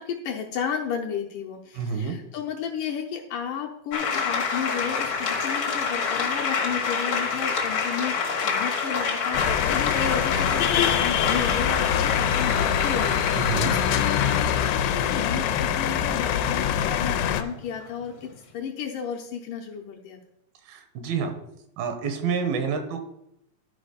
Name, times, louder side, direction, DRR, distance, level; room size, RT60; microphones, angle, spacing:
voice 1, 0.0-20.2, left 7 dB, 75° left, 0 dB, 2.1 m, -33 dB
voice 2, 1.8-2.2 13.3-13.8 20.7-21.3 21.8-23.0, right 6 dB, 80° right, 6 dB, 2.9 m, -28 dB
sound 1, 3.9-18.4, left 5 dB, 60° left, 1.3 m, -28 dB
sound 2, 9.3-17.4, left 9 dB, 90° left, 2.5 m, -24 dB
12.0 x 4.9 x 5.2 m, 0.79 s
omnidirectional pair, 4.4 m